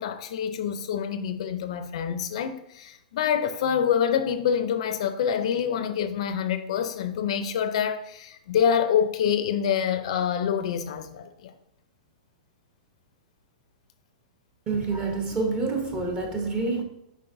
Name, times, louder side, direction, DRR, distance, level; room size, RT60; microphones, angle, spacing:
voice 1, 0.0-11.5, left 8 dB, 45° left, 0.4 m, -26 dB
voice 2, 14.7-16.8, right 3 dB, 15° right, 0.7 m, -27 dB
7.7 x 5.0 x 2.6 m
supercardioid pair, 175°, 4 cm